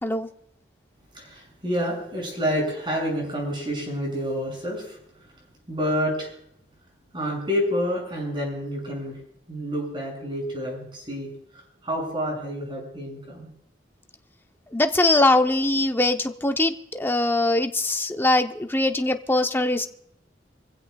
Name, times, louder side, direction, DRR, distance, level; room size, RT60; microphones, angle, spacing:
voice 1, 1.1-6.4 7.1-9.2 9.5-13.5, equal, 30° right, -1 dB, 7.1 m, -29 dB
voice 2, 14.7-19.9, left 2 dB, 10° left, 6 dB, 0.8 m, -22 dB
25.5 x 15.5 x 2.4 m, 0.73 s
head